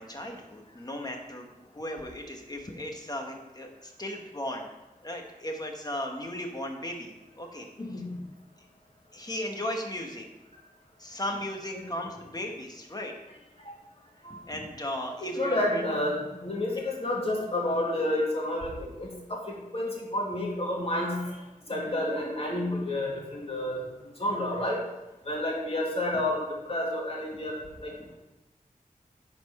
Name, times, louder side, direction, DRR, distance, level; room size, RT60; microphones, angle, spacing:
voice 1, 0.0-4.7 5.0-8.0 9.1-10.3 11.0-13.1 14.5-15.9 25.5-25.6, left 1 dB, 25° left, 2 dB, 1.2 m, -36 dB
voice 2, 15.2-19.4 19.7-21.2 21.7-23.8 24.2-24.8 25.3-27.5 27.8-28.2, left 1 dB, 45° left, -3 dB, 2.1 m, -30 dB
10.0 x 4.4 x 4.2 m, 1.0 s
wide cardioid pair, 85°, 14 cm